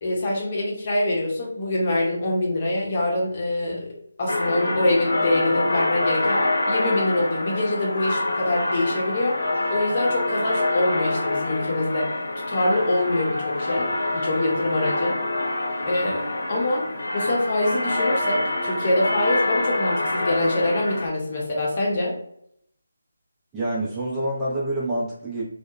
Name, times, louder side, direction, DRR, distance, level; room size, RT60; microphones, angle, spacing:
voice 1, 0.0-9.4 9.7-12.2 12.5-13.9 14.1-15.2 15.8-16.8 17.1-22.1, left 2 dB, 40° left, -2 dB, 0.8 m, -24 dB
sound 1, 4.3-21.1, left 2 dB, 75° left, 0.5 m, -26 dB
voice 2, 23.5-25.4, right 1 dB, 10° right, -7 dB, 0.5 m, -27 dB
2.7 x 2.1 x 2.3 m, 0.69 s
figure-of-eight pair, 160°, 0 cm